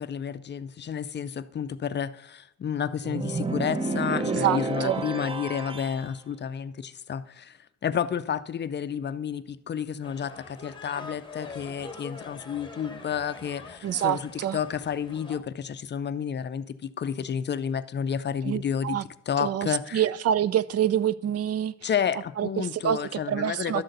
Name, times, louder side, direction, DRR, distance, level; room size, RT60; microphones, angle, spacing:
voice 1, 0.0-19.0 19.3-20.0 21.8-23.8, left 8 dB, 35° left, 0.5 m, -31 dB
sound 1, 3.0-6.1, right 3 dB, 20° right, 0.7 m, -30 dB
voice 2, 4.3-5.0 13.8-14.6 18.4-19.0 19.4-21.9 22.4-23.8, right 10 dB, 55° right, 0.5 m, -27 dB
sound 2, 10.0-15.4, left 4 dB, 15° left, 1.1 m, -44 dB
11.5 x 3.9 x 7.8 m
cardioid pair, 90°, 30 cm